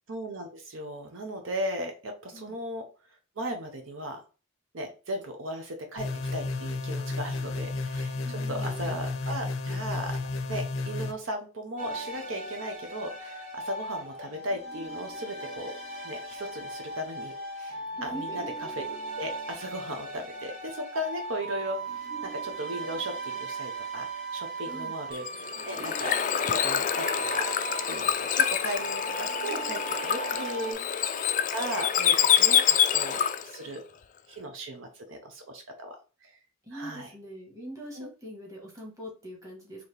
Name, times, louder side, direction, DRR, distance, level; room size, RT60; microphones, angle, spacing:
voice 1, 0.1-2.9 3.4-4.2 4.7-10.2 10.5-15.7 16.0-26.2 26.5-27.5 27.9-31.2 31.5-33.8 34.3-36.3 36.7-37.1 37.9-38.1, equal, 70° right, 4 dB, 0.8 m, -37 dB
sound 1, 6.0-11.1, left 3 dB, 85° left, 0.6 m, -32 dB
voice 2, 8.2-9.0 18.0-18.4 24.7-25.0 30.3-30.9 36.7-39.9, equal, 15° right, -2 dB, 1.4 m, -43 dB
sound 2, 11.8-30.7, right 2 dB, 40° right, 1.1 m, -38 dB
Bird / Water, 25.1-33.6, left 9 dB, 40° left, 0.3 m, -26 dB
4.1 x 2.9 x 3.3 m, 0.34 s
head